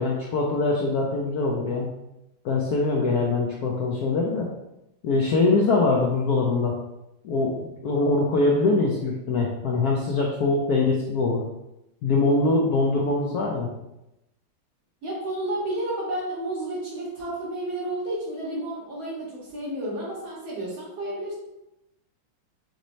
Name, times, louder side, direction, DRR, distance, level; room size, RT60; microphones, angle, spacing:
voice 1, 0.0-1.9 2.4-4.5 5.0-6.7 7.2-11.4 12.0-13.7, left 3 dB, 70° left, -2 dB, 0.9 m, -23 dB
voice 2, 15.0-21.3, right 1 dB, 85° right, -6 dB, 2.2 m, -31 dB
5.1 x 3.1 x 2.7 m, 0.89 s
omnidirectional pair, 2.1 m